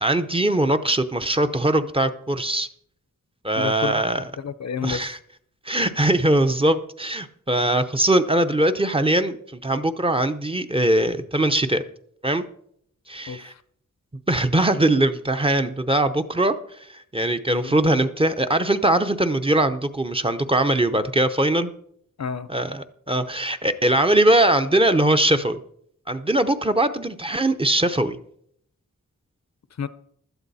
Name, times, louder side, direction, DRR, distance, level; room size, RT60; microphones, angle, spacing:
voice 1, 0.0-2.7 3.4-4.2 4.8-5.2 5.6-11.8 12.2-12.4 13.1-13.5 14.3-21.7 22.5-25.6 26.1-28.2, right 1 dB, 20° right, 8 dB, 0.7 m, -21 dB
voice 2, 3.5-4.0 4.4-5.1 13.3-13.6 17.5-17.8 22.2-22.5 29.7-29.9, left 7 dB, 60° left, 15 dB, 0.7 m, -30 dB
16.0 x 12.5 x 4.1 m, 0.67 s
wide cardioid pair, 145°, 31 cm